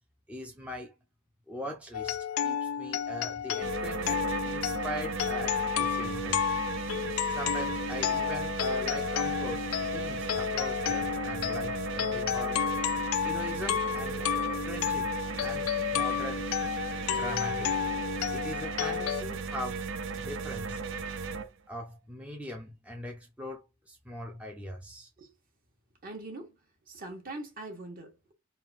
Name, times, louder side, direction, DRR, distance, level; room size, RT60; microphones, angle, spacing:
voice 1, 0.3-0.9 1.5-6.4 7.3-12.6 13.2-14.3 14.7-15.1 15.4-16.4 17.1-17.7 18.3-19.9 20.1-20.8 21.7-25.1, left 1 dB, 5° right, 0.6 m, -40 dB
sound 1, 1.9-19.2, left 9 dB, 70° left, 0.3 m, -31 dB
sound 2, 3.6-21.4, right 5 dB, 60° right, 0.6 m, -36 dB
voice 2, 26.0-26.5 26.9-28.3, right 2 dB, 45° right, 1.4 m, -42 dB
3.8 x 2.3 x 4.1 m
head